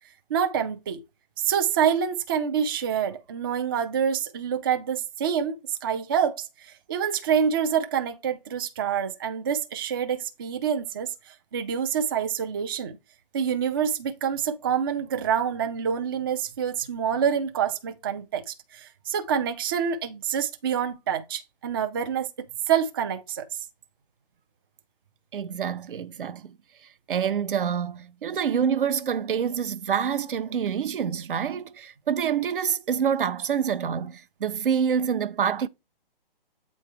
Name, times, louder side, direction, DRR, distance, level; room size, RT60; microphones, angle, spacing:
voice 1, 0.3-1.0 1.4-13.0 13.3-22.3 22.7-23.5, right 8 dB, 25° right, 0.4 m, -27 dB
voice 2, 25.3-26.5 27.1-35.7, right 7 dB, 65° right, 0.6 m, -27 dB
8.0 x 3.2 x 4.5 m
hypercardioid pair, 145°, 29 cm